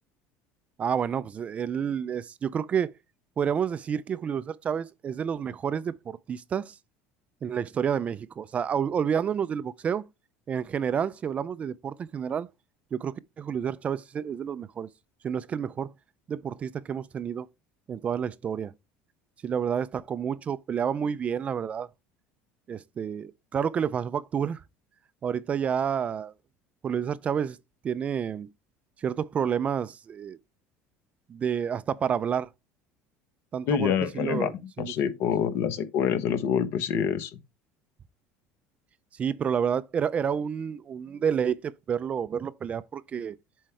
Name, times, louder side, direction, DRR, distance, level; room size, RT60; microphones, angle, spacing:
voice 1, 0.8-2.9 3.4-6.8 7.4-10.0 10.5-12.5 12.9-14.9 15.2-15.9 16.3-17.5 17.9-18.7 19.4-21.9 22.7-24.6 25.2-26.3 26.8-27.6 27.8-28.5 29.0-30.4 31.3-32.5 33.5-35.2 39.2-43.4, right 7 dB, 25° right, 0.4 m, -29 dB
voice 2, 33.7-34.5 34.8-37.3, left 8 dB, 60° left, 1.0 m, -26 dB
7.5 x 4.6 x 3.3 m
cardioid pair, 145°, 5 cm